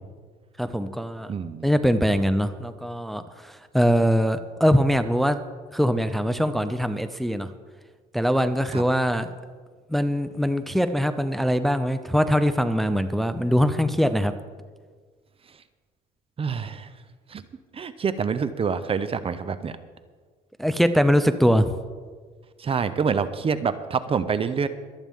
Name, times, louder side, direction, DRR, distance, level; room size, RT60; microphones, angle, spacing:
voice 1, 0.6-1.3 1.6-5.4 5.7-7.5 8.1-9.3 9.9-14.3 20.6-21.8, equal, ahead, 10 dB, 0.6 m, -22 dB
voice 2, 1.3-1.7 8.7-8.8 15.4-15.6 16.4-17.0 17.3-17.4 17.7-19.8 22.6-24.7, right 6 dB, 35° right, 12 dB, 0.7 m, -27 dB
23.5 x 9.0 x 3.6 m, 1.5 s
cardioid pair, 110°, 17 cm